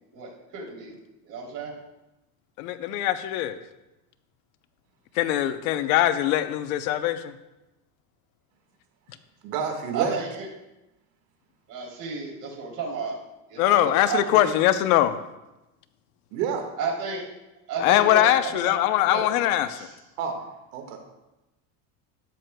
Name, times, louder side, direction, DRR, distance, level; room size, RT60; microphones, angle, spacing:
voice 1, 0.1-1.0 1.2-1.7 9.9-10.5 11.7-13.2 13.5-14.5 16.8-17.2 17.7-18.7 19.1-19.2 19.8-19.9, right 5 dB, 45° right, -2 dB, 3.2 m, -32 dB
voice 2, 2.6-3.6 5.2-7.3 13.6-15.2 17.8-19.8, left 13 dB, 80° left, 11 dB, 0.8 m, -22 dB
voice 3, 9.4-10.2 16.3-16.6 20.2-20.4 20.7-21.0, right 6 dB, 75° right, 3 dB, 1.8 m, -28 dB
13.0 x 9.3 x 2.3 m, 0.98 s
supercardioid pair, 130°, 43 cm